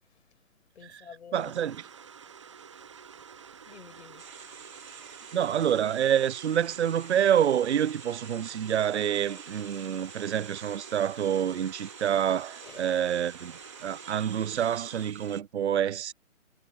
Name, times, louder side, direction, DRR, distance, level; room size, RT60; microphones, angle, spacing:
voice 1, 0.7-1.5 3.2-3.3 3.6-4.3 4.8-5.2 12.6-12.9, left 7 dB, 55° left, 7.7 m, -50 dB
sound 1, 1.3-15.1, right 7 dB, 20° right, 0.9 m, -49 dB
voice 2, 1.3-1.8 5.3-16.1, right 9 dB, 55° right, 0.6 m, -27 dB
sound 2, 4.2-15.4, right 6 dB, 75° right, 5.5 m, -48 dB
hypercardioid pair, 170°, 41 cm